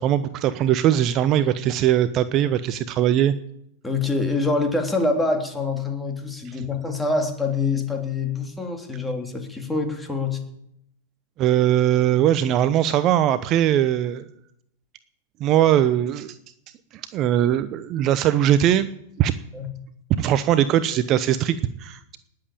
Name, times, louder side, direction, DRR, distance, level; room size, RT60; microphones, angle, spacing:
voice 1, 0.0-3.3 11.4-14.3 15.4-16.4 17.1-18.9 19.2-19.3 20.2-22.2, right 11 dB, 40° right, 13 dB, 0.8 m, -20 dB
voice 2, 3.8-10.4 19.5-19.7, left 3 dB, 10° left, 3 dB, 3.3 m, -25 dB
19.5 x 7.8 x 8.7 m, 0.77 s
figure-of-eight pair, 100°, 0 cm